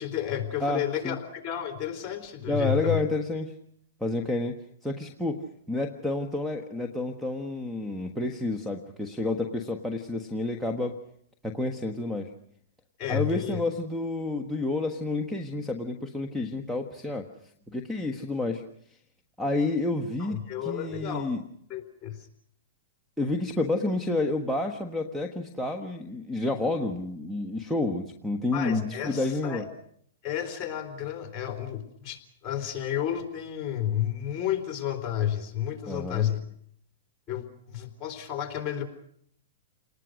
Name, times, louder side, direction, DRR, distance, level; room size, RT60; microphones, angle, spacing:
voice 1, 0.0-3.0 13.0-13.6 20.2-21.3 21.7-22.3 28.5-29.6 30.2-36.4 37.3-38.8, left 10 dB, 25° left, 7 dB, 3.8 m, -31 dB
voice 2, 0.6-1.2 2.5-3.5 4.0-4.6 4.8-11.0 11.4-12.3 13.1-17.3 17.7-18.6 19.4-21.4 23.2-29.6 35.9-36.3, left 2 dB, ahead, 9 dB, 1.4 m, -29 dB
29.5 x 19.5 x 6.4 m, 0.66 s
hypercardioid pair, 145°, 0 cm